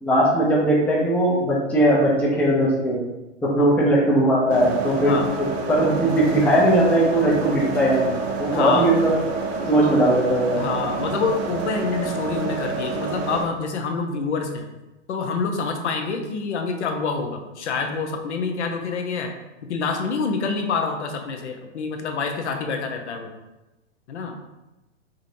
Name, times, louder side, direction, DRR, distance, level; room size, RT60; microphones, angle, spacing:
voice 1, 0.0-3.0 3.4-5.2 5.7-9.1 9.7-10.6, right 1 dB, 5° left, -5 dB, 0.5 m, -19 dB
sound 1, 4.5-13.5, right 4 dB, 55° right, 0.8 m, -28 dB
voice 2, 8.5-8.9 10.6-14.6 15.1-19.3 19.7-23.3 24.1-24.3, left 4 dB, 65° left, 5 dB, 0.7 m, -27 dB
4.9 x 2.7 x 2.6 m, 1.0 s
hypercardioid pair, 125°, 37 cm